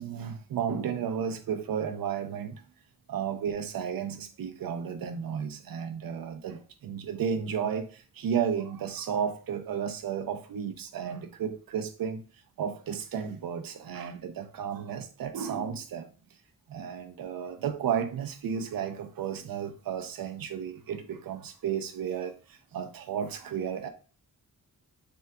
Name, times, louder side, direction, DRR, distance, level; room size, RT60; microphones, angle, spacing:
voice 1, 0.0-2.6 3.1-12.2 12.6-16.1 16.7-23.9, right 7 dB, 75° right, 0.5 m, -33 dB
3.5 x 2.2 x 2.6 m
wide cardioid pair, 160°, 35 cm